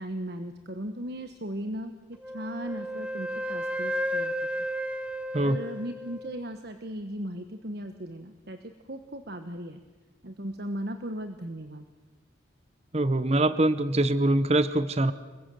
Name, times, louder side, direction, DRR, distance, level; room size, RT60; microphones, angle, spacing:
voice 1, 0.0-1.9 2.3-4.3 5.4-9.8 10.2-11.9, right 1 dB, 55° right, 7 dB, 1.3 m, -37 dB
Wind instrument woodwind instrument, 2.2-6.4, equal, 5° right, 1.0 m, -33 dB
voice 2, 12.9-15.1, right 1 dB, 30° right, 13 dB, 0.9 m, -23 dB
26.5 x 22.0 x 7.7 m, 1.2 s
head